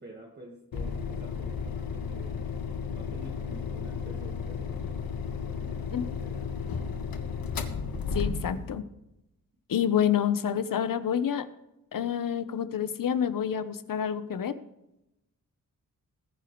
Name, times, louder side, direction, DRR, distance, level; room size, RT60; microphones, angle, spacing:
voice 1, 0.0-2.4 2.9-5.1 5.4-6.5, right 1 dB, 30° right, 0 dB, 1.5 m, -48 dB
sound 1, 0.7-8.8, left 5 dB, 90° left, 1.4 m, -34 dB
voice 2, 8.1-8.9 9.7-11.5 11.9-14.5, left 9 dB, 70° left, 12 dB, 0.9 m, -28 dB
19.5 x 10.0 x 3.1 m, 0.89 s
wide cardioid pair, 135°, 34 cm